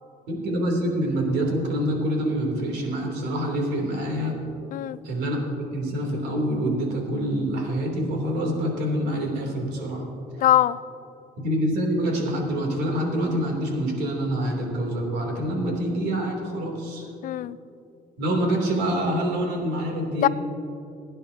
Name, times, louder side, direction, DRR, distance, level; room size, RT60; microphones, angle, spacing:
voice 1, 0.3-4.3 5.0-10.0 11.4-17.1 18.2-20.3, right 1 dB, 85° right, 0 dB, 3.1 m, -26 dB
voice 2, 10.4-10.8 17.2-17.6 20.2-20.3, left 13 dB, 55° left, 17 dB, 0.4 m, -21 dB
21.0 x 10.0 x 2.8 m, 2.7 s
cardioid pair, 110°, 17 cm